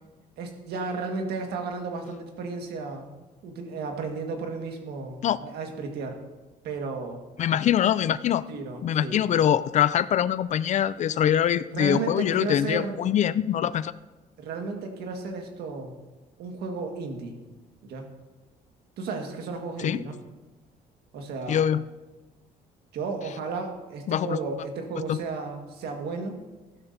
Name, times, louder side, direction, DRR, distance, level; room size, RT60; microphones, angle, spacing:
voice 1, 0.4-3.1 3.4-6.2 6.6-7.2 8.5-9.2 11.7-13.0 14.4-15.9 16.4-17.4 17.8-18.1 19.0-20.2 21.1-21.6 22.9-26.4, right 4 dB, 70° right, 3 dB, 1.7 m, -33 dB
voice 2, 7.4-8.4 8.8-13.9 19.8-20.0 21.5-21.8 24.1-24.4 25.1-25.2, left 10 dB, 45° left, 16 dB, 0.4 m, -23 dB
14.5 x 12.0 x 2.7 m, 1.2 s
cardioid pair, 110°, 17 cm